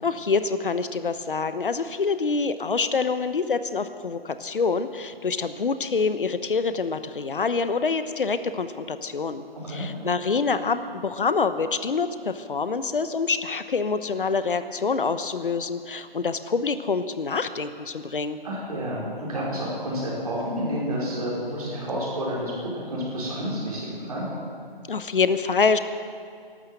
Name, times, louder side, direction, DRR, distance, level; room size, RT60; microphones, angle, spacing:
voice 1, 0.0-18.4 24.9-25.8, left 4 dB, 60° left, 11 dB, 1.0 m, -26 dB
voice 2, 9.5-9.9 18.4-24.2, equal, 40° right, -5 dB, 5.1 m, -30 dB
13.0 x 12.5 x 7.9 m, 2.3 s
hypercardioid pair, 175°, 30 cm